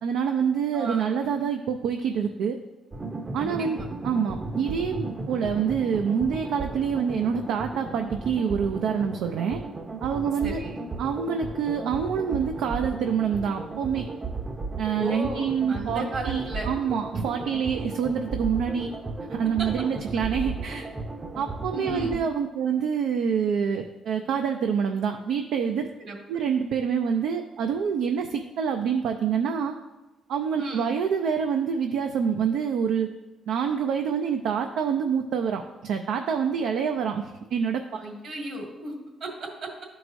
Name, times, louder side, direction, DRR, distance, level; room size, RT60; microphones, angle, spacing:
voice 1, 0.0-2.6 3.3-3.8 4.0-9.6 10.0-10.6 11.0-14.1 14.8-19.0 19.3-20.9 21.3-25.9 26.3-29.7 30.3-33.1 33.5-37.8, right 7 dB, 85° right, 4 dB, 0.4 m, -26 dB
voice 2, 0.7-1.2 3.4-3.9 10.4-10.8 14.9-16.7 19.6-19.7 21.7-22.2 26.0-26.2 30.6-31.0 38.0-38.9 39.2-39.7, right 2 dB, 65° right, 0 dB, 2.0 m, -34 dB
sound 1, 2.9-22.2, right 3 dB, 25° right, 0.6 m, -35 dB
12.0 x 4.7 x 2.6 m, 1.1 s
cardioid pair, 90°, 0 cm